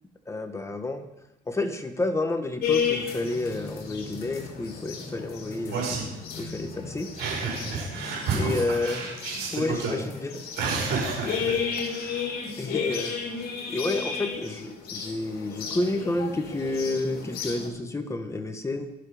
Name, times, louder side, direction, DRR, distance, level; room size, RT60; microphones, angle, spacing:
voice 1, 0.3-1.0 1.5-5.7 6.4-7.1 8.3-9.0 9.5-10.3 12.6-13.2 13.7-18.9, left 2 dB, 15° left, 6 dB, 1.6 m, -30 dB
sound 1, 2.6-17.7, left 6 dB, 65° left, 3.4 m, -33 dB
voice 2, 5.7-6.1 7.2-9.9 10.6-11.6 11.9-12.3, right 4 dB, 90° right, -2 dB, 5.9 m, -30 dB
22.5 x 7.5 x 5.2 m, 0.90 s
cardioid pair, 110°, 17 cm